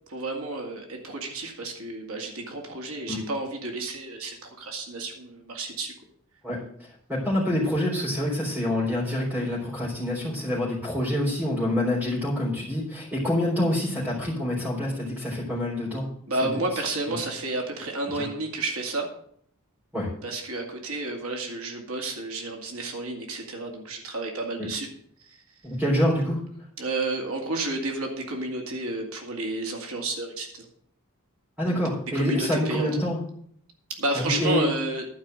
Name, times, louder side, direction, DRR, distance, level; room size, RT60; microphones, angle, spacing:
voice 1, 0.1-5.9 16.3-19.1 20.2-24.9 25.2-25.4 26.8-30.7 31.7-31.9 32.1-32.9 33.9-35.1, right 2 dB, 85° right, 2 dB, 2.2 m, -31 dB
voice 2, 7.1-16.1 18.1-18.3 19.9-20.1 24.6-24.7 25.6-26.4 31.6-33.2 34.1-34.7, left 1 dB, 10° right, -7 dB, 3.5 m, -26 dB
11.5 x 5.4 x 7.6 m, 0.65 s
head